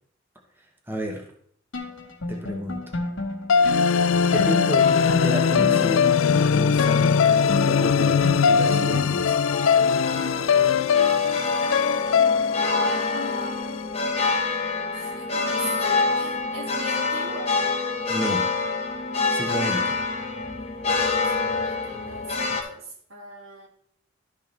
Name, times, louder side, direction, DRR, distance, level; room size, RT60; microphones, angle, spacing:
voice 1, 0.9-1.3 2.3-2.8 4.3-4.9 5.2-6.1 6.5-9.4 18.1-18.5 19.3-19.8, equal, 10° right, 1 dB, 1.3 m, -31 dB
sound 1, 1.7-9.4, left 2 dB, 65° left, 1.3 m, -33 dB
sound 2, 3.5-13.8, left 6 dB, 90° left, 0.4 m, -20 dB
sound 3, 4.0-22.6, left 3 dB, 30° left, 1.1 m, -28 dB
voice 2, 12.6-13.6 14.9-17.6 19.3-19.7 21.3-23.7, right 2 dB, 80° right, 1 dB, 2.0 m, -38 dB
12.5 x 6.5 x 3.3 m, 0.62 s
head